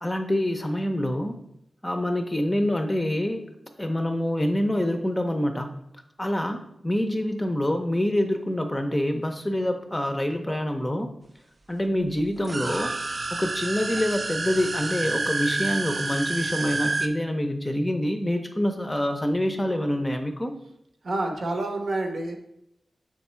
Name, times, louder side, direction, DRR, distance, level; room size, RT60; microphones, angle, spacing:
voice 1, 0.0-1.4 1.8-3.5 3.8-5.7 6.2-11.1 11.7-12.9 13.3-20.5, left 1 dB, 15° left, 5 dB, 0.6 m, -26 dB
sound 1, 12.4-17.1, right 3 dB, 40° right, 0.4 m, -29 dB
voice 2, 21.0-22.4, right 2 dB, 70° right, 3 dB, 1.0 m, -28 dB
6.3 x 3.5 x 4.3 m, 0.79 s
wide cardioid pair, 85°, 0 cm